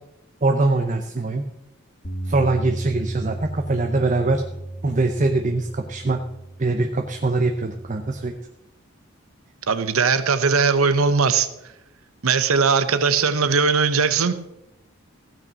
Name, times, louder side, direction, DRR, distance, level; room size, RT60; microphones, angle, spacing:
voice 1, 0.4-1.4 2.2-4.4 4.8-6.2 6.6-8.3, right 2 dB, 35° right, 5 dB, 0.6 m, -22 dB
Bass guitar, 2.0-8.3, right 1 dB, 65° left, 2.0 m, -35 dB
voice 2, 9.7-11.5 12.2-14.3, right 5 dB, 85° right, 12 dB, 0.9 m, -19 dB
16.0 x 6.1 x 6.1 m, 0.90 s
head